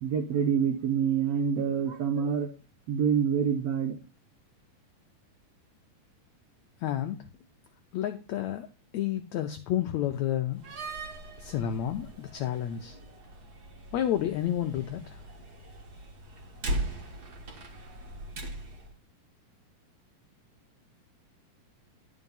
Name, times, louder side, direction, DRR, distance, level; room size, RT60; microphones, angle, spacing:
voice 1, 0.0-2.5 2.9-3.9, right 7 dB, 75° right, 3 dB, 1.5 m, -26 dB
voice 2, 6.8-7.2 7.9-8.7 8.9-10.6 11.4-13.0 13.9-15.2, left 11 dB, 90° left, 5 dB, 1.5 m, -30 dB
Slam, 10.5-18.9, right 1 dB, 60° right, 1.0 m, -39 dB
11.0 x 4.6 x 5.4 m, 0.34 s
omnidirectional pair, 4.1 m